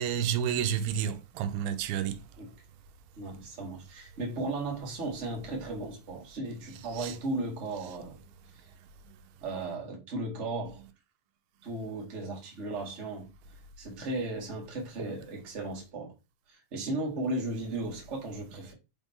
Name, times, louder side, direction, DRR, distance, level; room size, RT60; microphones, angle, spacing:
voice 1, 0.0-2.2 6.9-7.2, right 9 dB, 85° right, 2.7 m, -30 dB
voice 2, 3.1-8.2 9.4-10.8 11.6-13.3 13.8-16.1 16.5-18.7, right 2 dB, 35° right, 1.2 m, -35 dB
5.7 x 5.3 x 3.6 m
omnidirectional pair, 4.4 m